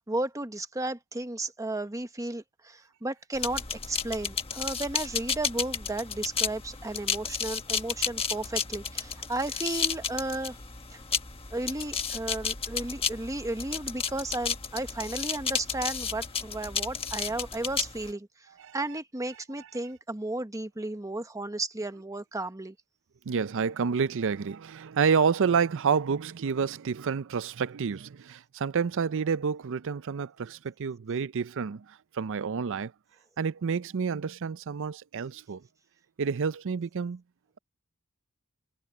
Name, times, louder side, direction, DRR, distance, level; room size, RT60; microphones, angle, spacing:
voice 1, 0.0-10.6 10.9-11.0 11.5-22.7, right 2 dB, 15° right, 1.1 m, -34 dB
sound 1, 3.3-18.1, left 6 dB, 25° left, 1.4 m, -33 dB
voice 2, 23.3-32.9 33.4-35.6 36.2-37.2, right 6 dB, 60° right, 0.5 m, -29 dB
head